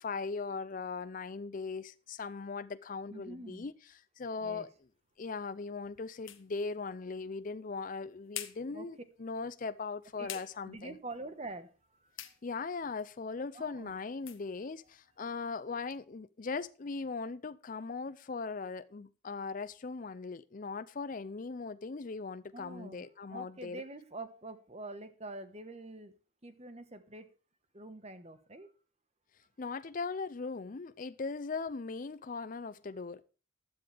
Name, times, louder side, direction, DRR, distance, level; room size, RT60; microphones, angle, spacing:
voice 1, 0.0-3.7 4.2-4.7 5.2-10.9 12.4-23.8 29.6-33.2, left 4 dB, 40° left, 0.4 m, -39 dB
voice 2, 3.1-3.7 4.4-4.7 8.7-8.9 10.2-10.3 10.7-12.2 13.5-13.9 22.5-26.2 26.4-27.4 27.7-28.7, right 2 dB, 30° right, 1.2 m, -46 dB
sound 1, 4.5-16.0, left 12 dB, 60° left, 1.3 m, -52 dB
15.5 x 10.0 x 3.4 m
head